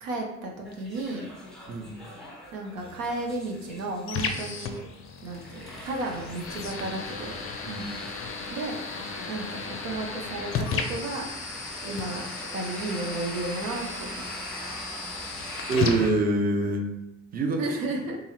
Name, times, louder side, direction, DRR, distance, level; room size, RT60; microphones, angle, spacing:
voice 1, 0.0-1.3 2.5-4.8 5.2-7.3 8.5-8.8 9.3-11.3 11.8-12.3 12.5-14.2 17.6-18.2, right 2 dB, 85° right, 0 dB, 0.6 m, -33 dB
sound 1, 0.6-16.1, equal, ahead, 0.7 m, -41 dB
voice 2, 1.7-2.0 7.7-7.9 15.7-16.9 17.3-17.6, right 2 dB, 25° right, 3 dB, 0.5 m, -25 dB
sound 2, 2.8-16.8, left 5 dB, 35° left, 0.4 m, -36 dB
2.8 x 2.7 x 2.4 m, 0.88 s
hypercardioid pair, 50°, 38 cm